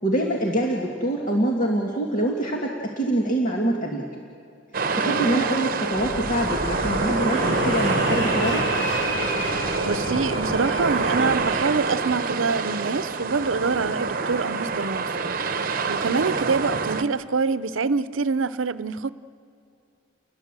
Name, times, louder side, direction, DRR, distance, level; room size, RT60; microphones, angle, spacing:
voice 1, 0.0-4.1 4.9-8.7, right 1 dB, 40° left, 2.0 m, -25 dB
sound 1, 4.7-17.0, right 4 dB, 45° right, 1.0 m, -26 dB
voice 2, 5.1-5.5 9.8-15.2 15.6-19.1, right 4 dB, 85° right, 0.7 m, -26 dB
Fixed-wing aircraft airplane, 5.9-11.5, left 1 dB, 90° left, 7.5 m, -29 dB
30.0 x 21.0 x 7.5 m
head